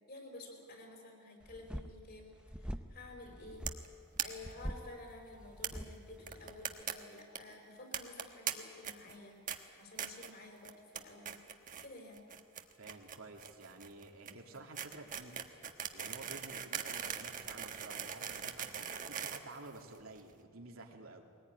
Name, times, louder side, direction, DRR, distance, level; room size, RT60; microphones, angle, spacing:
voice 1, 0.1-3.6 4.2-9.4 9.8-11.4 11.8-12.2, left 2 dB, 50° left, 3 dB, 4.8 m, -52 dB
sound 1, 1.4-6.8, equal, 5° right, 0.6 m, -46 dB
sound 2, 3.7-3.9 4.2-4.3 4.5-4.6 4.8-4.9 5.6-5.7 6.3-6.9 7.2-7.4 7.9-8.5 8.8-9.1 9.5-9.6 10.0-10.3 10.6-11.0 11.2-11.9 12.1-20.2, right 8 dB, 40° right, 1.3 m, -40 dB
voice 2, 12.8-15.5 15.9-21.2, right 2 dB, 85° right, 1 dB, 2.8 m, -51 dB
22.0 x 19.0 x 9.6 m, 2.2 s
head